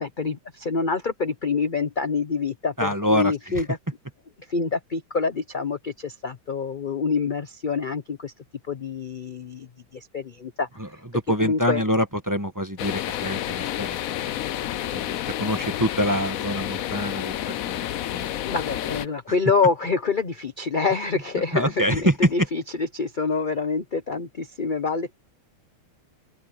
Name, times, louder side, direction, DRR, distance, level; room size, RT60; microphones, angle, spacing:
voice 1, 0.0-3.6 4.5-8.3 8.7-11.0 11.4-11.8 18.4-25.1, left 4 dB, 45° left, 0.6 m, -26 dB
voice 2, 2.8-3.6 10.8-10.9 11.1-17.9 18.1-18.3 19.3-19.4 21.5-22.3, equal, 10° right, 1.2 m, -26 dB
sound 1, 12.8-19.1, left 12 dB, 90° left, 0.7 m, -30 dB
open air
omnidirectional pair, 2.2 m